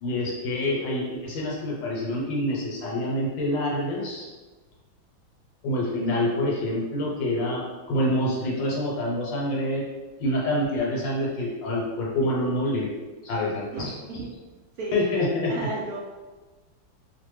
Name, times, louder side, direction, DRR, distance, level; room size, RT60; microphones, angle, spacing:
voice 1, 0.0-4.3 5.6-9.9 10.2-12.9 13.2-13.7 14.9-15.5, left 1 dB, 75° left, -4 dB, 1.4 m, -26 dB
voice 2, 13.7-14.3 14.8-15.2 15.5-16.0, right 2 dB, 80° right, -5 dB, 0.8 m, -33 dB
3.2 x 2.1 x 3.1 m, 1.2 s
omnidirectional pair, 2.1 m